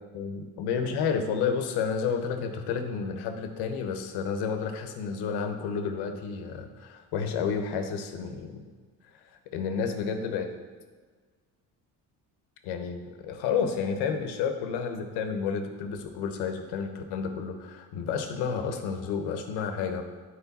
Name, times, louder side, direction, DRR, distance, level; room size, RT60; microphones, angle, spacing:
voice 1, 0.1-8.7 9.5-10.5 12.6-20.0, left 6 dB, 85° left, 7 dB, 0.9 m, -31 dB
8.4 x 4.8 x 4.1 m, 1.5 s
cardioid pair, 95°, 39 cm